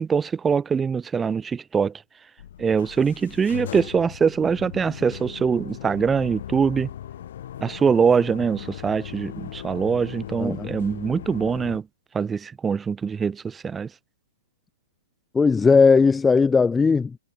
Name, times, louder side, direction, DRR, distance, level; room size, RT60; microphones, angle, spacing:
voice 1, 0.0-2.0 2.6-6.9 7.6-11.9 12.1-13.9, right 6 dB, 10° right, 2.9 m, -23 dB
sound 1, 2.4-11.8, left 11 dB, 55° left, 4.2 m, -38 dB
voice 2, 15.3-17.2, left 5 dB, 10° left, 1.0 m, -17 dB
hypercardioid pair, 160°, 0 cm